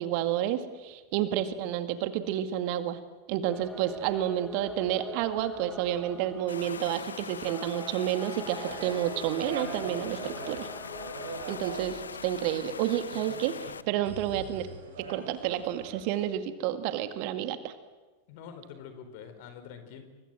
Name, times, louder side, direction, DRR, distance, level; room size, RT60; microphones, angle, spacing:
voice 1, 0.0-3.0 3.3-10.7 11.5-14.7 15.0-17.7, right 11 dB, 45° right, 10 dB, 2.0 m, -30 dB
sound 1, 3.5-11.6, right 2 dB, 5° right, 2.2 m, -45 dB
Water, 6.5-13.8, left 6 dB, 70° left, 0.9 m, -41 dB
sound 2, 8.6-16.3, right 5 dB, 60° right, 6.4 m, -42 dB
voice 2, 18.3-20.0, left 7 dB, 50° left, 9 dB, 4.6 m, -45 dB
28.5 x 24.5 x 7.9 m, 1.2 s
figure-of-eight pair, 90°, 0 cm